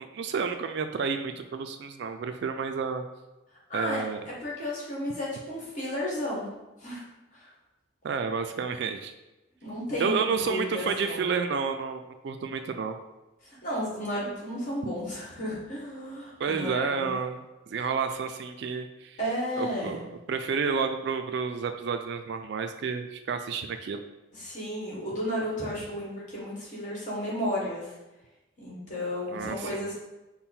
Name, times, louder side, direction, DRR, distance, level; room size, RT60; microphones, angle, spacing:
voice 1, 0.0-3.0 3.7-4.2 8.0-9.1 10.0-13.0 16.4-19.2 19.6-20.0 20.3-24.0 29.3-29.9, right 5 dB, 55° right, 7 dB, 0.3 m, -30 dB
voice 2, 3.7-6.5 6.8-7.0 7.3-7.5 9.6-11.2 13.4-17.1 17.8-17.9 19.2-20.0 24.3-27.9 28.6-29.9, equal, 40° left, -6 dB, 1.5 m, -33 dB
5.5 x 2.1 x 4.2 m, 1.0 s
head